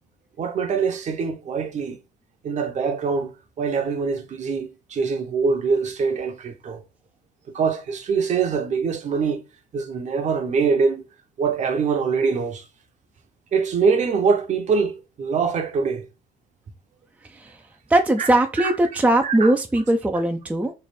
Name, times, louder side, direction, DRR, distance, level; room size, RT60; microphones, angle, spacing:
voice 1, 0.4-2.0 2.4-3.3 3.6-6.8 7.5-9.4 9.7-11.0 11.4-12.6 13.5-16.1 18.2-18.3 18.6-18.7 19.2-19.5, right 5 dB, 45° right, 0.8 m, -23 dB
voice 2, 17.9-20.7, right 1 dB, 10° right, 0.5 m, -20 dB
3.2 x 2.5 x 4.2 m
cardioid pair, 110°, 17 cm